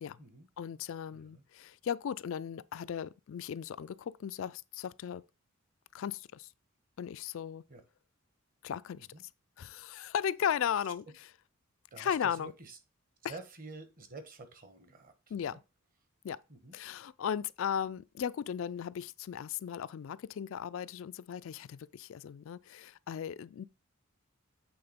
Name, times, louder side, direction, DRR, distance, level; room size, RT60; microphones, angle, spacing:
voice 1, 0.6-5.2 5.9-6.5 7.0-7.6 8.6-9.1 9.6-11.0 12.0-12.5 15.3-15.6 16.2-16.4 16.7-23.6, left 8 dB, 65° left, 0.3 m, -36 dB
voice 2, 1.1-1.4 7.7-7.8 9.0-9.2 11.9-12.8 13.2-15.1 15.4-15.6 16.5-16.8, right 3 dB, 40° right, 1.2 m, -49 dB
7.9 x 3.6 x 5.1 m
head